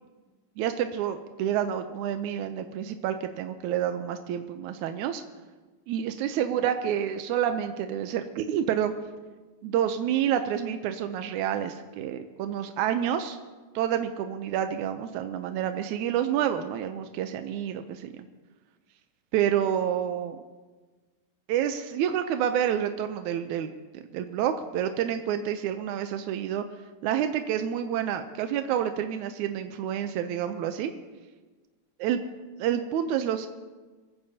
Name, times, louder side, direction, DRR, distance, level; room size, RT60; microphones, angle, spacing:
voice 1, 0.6-5.2 5.9-8.9 9.6-13.4 13.8-18.3 19.3-20.4 21.5-26.7 27.0-30.9 32.0-32.2 32.6-33.5, right 9 dB, 90° right, 8 dB, 2.1 m, -28 dB
23.5 x 15.5 x 2.8 m, 1.3 s
omnidirectional pair, 3.3 m